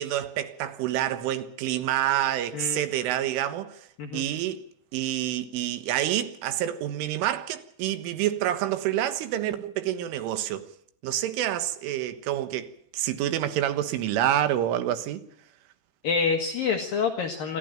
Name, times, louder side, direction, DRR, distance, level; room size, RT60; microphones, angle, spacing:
voice 1, 0.0-3.9 4.1-4.6 4.9-10.7 11.0-15.2, right 12 dB, 90° right, 3.9 m, -28 dB
voice 2, 2.5-2.8 4.0-4.2 16.0-17.6, left 5 dB, 60° left, 2.7 m, -27 dB
27.5 x 13.5 x 9.0 m
omnidirectional pair, 5.5 m